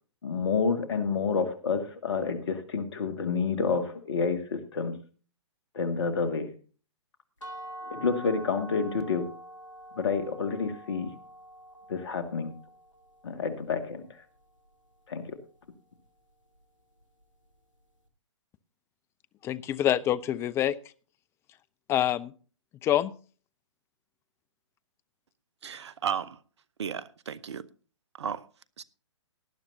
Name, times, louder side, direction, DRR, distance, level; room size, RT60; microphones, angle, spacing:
voice 1, 0.2-4.9 5.7-6.5 7.9-9.3 10.0-11.1 11.9-12.5 13.2-14.1 15.1-15.4, left 5 dB, 60° left, 2.1 m, -29 dB
sound 1, 7.4-13.2, right 1 dB, 80° left, 2.3 m, -45 dB
voice 2, 19.4-20.7 21.9-22.3 22.8-23.1, left 11 dB, 15° left, 0.5 m, -26 dB
voice 3, 25.6-26.4 26.8-27.6 28.2-28.4 28.8-28.9, right 8 dB, 60° right, 0.9 m, -34 dB
18.5 x 11.0 x 2.8 m
figure-of-eight pair, 120°, 16 cm